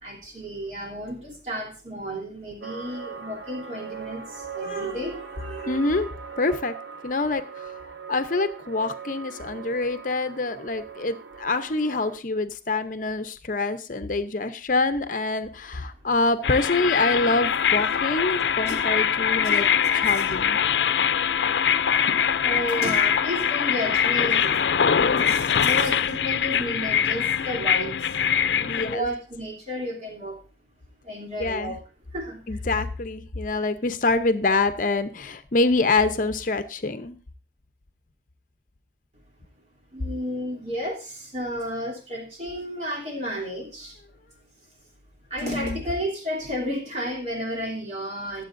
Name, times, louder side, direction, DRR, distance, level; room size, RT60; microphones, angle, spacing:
voice 1, 0.0-6.0 18.6-18.8 19.4-19.6 20.0-20.4 22.2-24.6 25.2-28.2 28.5-30.4 31.0-31.8 32.1-32.6 39.9-44.0 45.3-48.4, equal, 40° right, -1 dB, 3.1 m, -32 dB
sound 1, 2.6-12.2, right 6 dB, 80° right, 1.2 m, -40 dB
voice 2, 5.7-6.1 6.4-6.7 7.0-7.8 8.1-19.7 19.9-20.6 25.0-25.4 28.7-29.1 31.4-31.7 32.5-37.2 45.4-45.8, left 3 dB, 50° left, 10 dB, 0.7 m, -26 dB
sound 2, 16.4-28.9, left 8 dB, 80° left, 0.5 m, -23 dB
21.5 x 7.7 x 2.6 m, 0.33 s
head